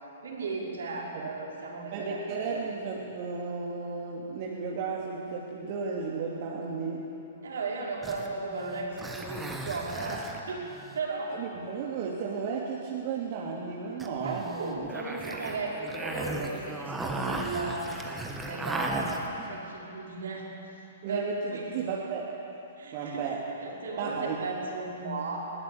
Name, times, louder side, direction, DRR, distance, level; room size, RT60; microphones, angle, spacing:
voice 1, 0.2-2.2 2.5-2.6 7.4-10.7 10.9-11.4 14.2-18.0 18.4-20.5 21.1-21.7 22.8-25.4, right 3 dB, 65° right, -3 dB, 5.4 m, -35 dB
voice 2, 1.9-7.1 11.3-14.5 21.0-22.3 22.9-23.4 24.0-24.5, right 5 dB, 45° right, -3 dB, 2.7 m, -34 dB
sound 1, 8.0-11.0 14.0-19.5, right 2 dB, 10° right, 2.1 m, -36 dB
20.5 x 18.5 x 8.7 m, 2.9 s
figure-of-eight pair, 115°, 0 cm